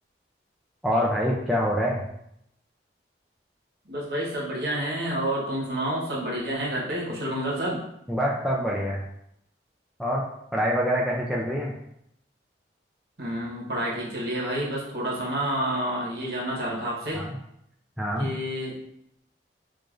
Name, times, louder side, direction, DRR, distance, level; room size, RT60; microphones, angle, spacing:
voice 1, 0.8-2.0 8.1-9.0 10.0-10.2 10.5-11.7 17.1-17.4 18.0-18.3, equal, ahead, -5 dB, 0.3 m, -25 dB
voice 2, 3.8-7.8 13.2-17.2 18.2-18.8, right 1 dB, 60° right, -4 dB, 1.1 m, -29 dB
4.8 x 2.5 x 2.4 m, 0.76 s
head